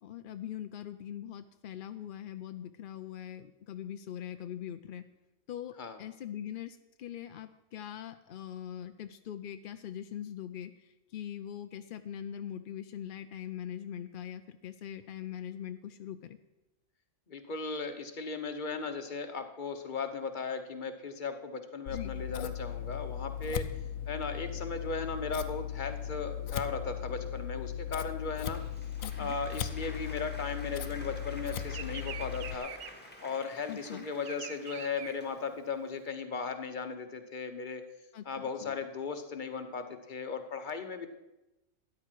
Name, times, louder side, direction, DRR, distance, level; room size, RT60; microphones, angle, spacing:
voice 1, 0.0-5.0 5.5-16.4 21.9-22.1 29.0-29.4 33.7-34.1 38.1-38.8, left 10 dB, 65° left, 9 dB, 0.5 m, -42 dB
voice 2, 17.3-23.6 24.1-28.6 29.2-32.7 33.2-37.8 38.3-41.1, left 4 dB, 40° left, 7 dB, 1.1 m, -37 dB
Scissors, 21.9-32.5, left 10 dB, 80° left, 1.1 m, -37 dB
Applause, 28.1-35.7, left 1 dB, 5° left, 1.7 m, -51 dB
Bird vocalization bird call bird song, 28.1-31.0 31.3-36.0, right 8 dB, 60° right, 0.5 m, -46 dB
13.5 x 9.9 x 4.5 m, 0.98 s
omnidirectional pair, 1.4 m